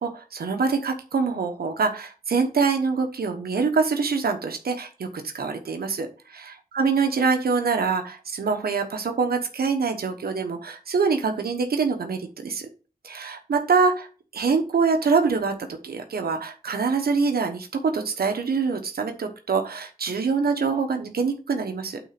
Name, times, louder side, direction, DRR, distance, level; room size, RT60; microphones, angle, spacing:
voice 1, 0.0-5.1 5.3-12.7 13.0-14.1 14.3-15.5 15.8-22.0, right 5 dB, 85° right, 5 dB, 1.1 m, -25 dB
9.1 x 3.9 x 5.9 m, 0.35 s
wide cardioid pair, 75°, 15 cm